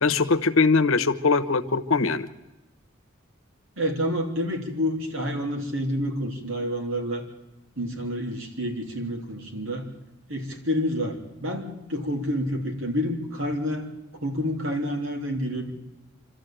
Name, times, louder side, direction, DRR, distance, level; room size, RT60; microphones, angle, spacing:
voice 1, 0.0-2.3, left 4 dB, 75° left, 11 dB, 1.0 m, -21 dB
voice 2, 3.8-7.2 7.8-9.9 10.3-13.9 14.2-15.7, equal, 70° right, 3 dB, 3.4 m, -28 dB
26.0 x 13.0 x 9.0 m, 1.0 s
head